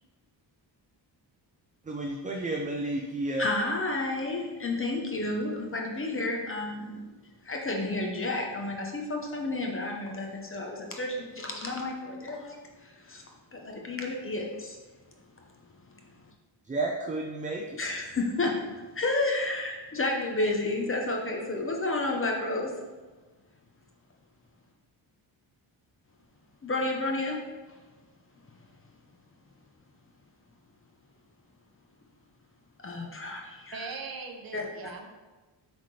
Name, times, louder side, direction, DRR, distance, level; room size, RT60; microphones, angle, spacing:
voice 1, 1.8-3.5 16.6-17.8, right 2 dB, 20° right, 1 dB, 0.4 m, -31 dB
voice 2, 3.4-16.3 17.8-22.7 26.6-27.8 28.3-29.0 32.8-33.9 34.5-34.9, left 2 dB, 30° left, 0 dB, 0.8 m, -32 dB
voice 3, 33.7-35.1, right 4 dB, 50° right, 3 dB, 0.8 m, -40 dB
7.8 x 4.1 x 3.2 m, 1.3 s
wide cardioid pair, 155°, 45 cm